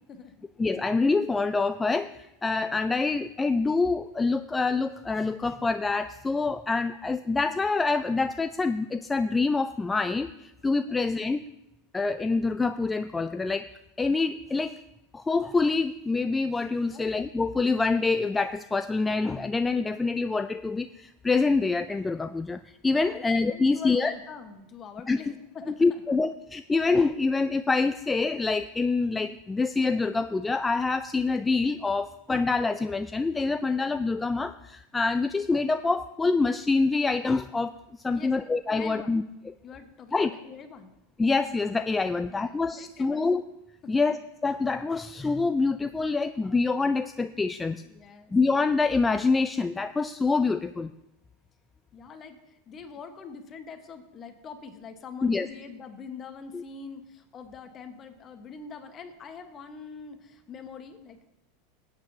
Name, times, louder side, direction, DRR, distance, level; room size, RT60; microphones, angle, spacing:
voice 1, 0.6-11.5 11.9-13.7 14.0-14.8 15.1-24.1 25.1-25.2 25.8-39.2 40.1-40.3 41.2-43.4 43.9-47.8 48.3-50.9 55.2-55.5 56.5-56.6, left 3 dB, 15° left, 10 dB, 0.4 m, -26 dB
voice 2, 22.9-26.0 38.1-38.3 38.7-39.2 39.6-40.9 42.0-43.2 43.8-44.0 47.8-48.3 51.9-61.3, left 5 dB, 35° left, 7 dB, 1.3 m, -44 dB
16.5 x 8.9 x 2.8 m, 0.90 s
hypercardioid pair, 105°, 0 cm